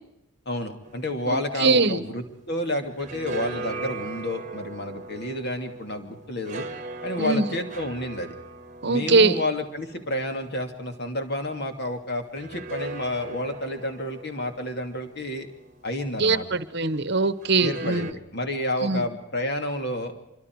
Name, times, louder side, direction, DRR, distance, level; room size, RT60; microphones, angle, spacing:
voice 1, 0.5-6.7 7.0-8.3 8.9-15.5 15.8-16.5 17.6-20.1, left 1 dB, 50° left, 6 dB, 2.8 m, -30 dB
sound 1, 0.8-2.5 2.8-11.5 12.3-16.4 17.4-18.1, right 2 dB, 35° right, 1.3 m, -39 dB
voice 2, 1.3-2.0 7.2-7.4 8.8-9.4 16.2-18.1 18.8-19.0, right 3 dB, 50° right, 14 dB, 1.1 m, -22 dB
25.5 x 24.5 x 4.8 m, 0.87 s
head